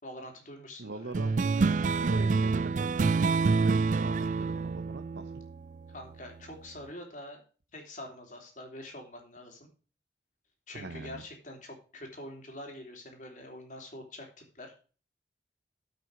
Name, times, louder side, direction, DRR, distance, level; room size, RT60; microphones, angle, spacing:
voice 1, 0.0-1.3 5.9-7.4 7.7-9.7 10.7-14.7, left 1 dB, 45° left, 2 dB, 3.3 m, -45 dB
voice 2, 0.8-5.3 10.7-11.2, right 3 dB, 80° right, 8 dB, 0.8 m, -42 dB
sound 1, 1.1-6.1, right 4 dB, 45° right, 0.4 m, -27 dB
9.3 x 7.8 x 4.9 m, 0.37 s
head